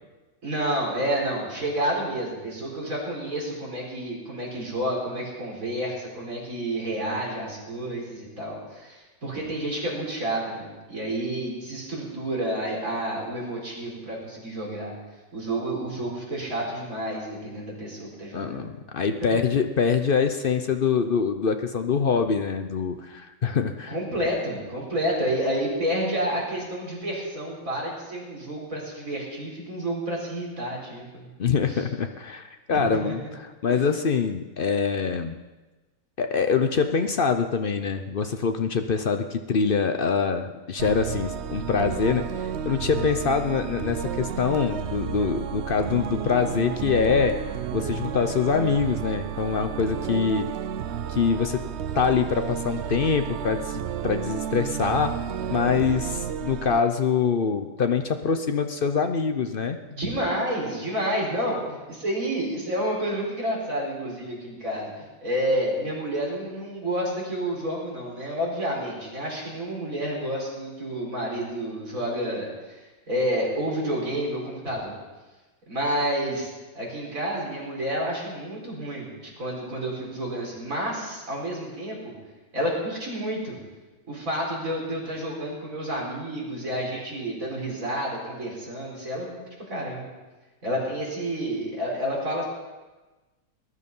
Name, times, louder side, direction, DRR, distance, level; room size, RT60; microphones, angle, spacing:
voice 1, 0.4-14.9 15.3-18.7 19.2-19.4 23.9-31.3 31.7-31.9 32.7-33.3 33.7-33.8 59.9-64.9 65.2-75.0 75.7-76.5 76.7-82.1 82.5-83.6 84.1-90.1 90.6-92.4, right 1 dB, 50° right, -3 dB, 5.1 m, -30 dB
voice 2, 18.3-23.9 31.4-33.2 33.6-35.4 36.2-47.4 47.7-50.5 51.1-51.6 51.9-55.1 55.5-59.8, left 6 dB, 60° left, 7 dB, 0.5 m, -24 dB
sound 1, 40.8-56.8, right 9 dB, 65° right, 0.6 m, -32 dB
20.0 x 11.0 x 5.5 m, 1.2 s
omnidirectional pair, 1.9 m